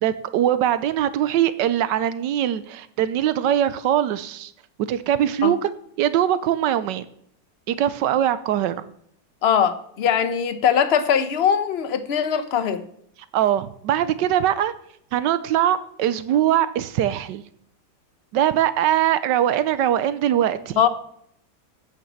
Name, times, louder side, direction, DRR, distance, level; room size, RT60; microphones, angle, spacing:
voice 1, 0.0-4.5 4.9-5.7 6.0-7.1 7.7-8.7 13.3-14.7 15.1-17.4 18.3-20.8, right 11 dB, 85° right, 14 dB, 1.3 m, -21 dB
voice 2, 9.4-12.8 20.8-20.9, left 8 dB, 50° left, 11 dB, 0.9 m, -21 dB
8.8 x 6.6 x 7.2 m, 0.67 s
omnidirectional pair, 1.9 m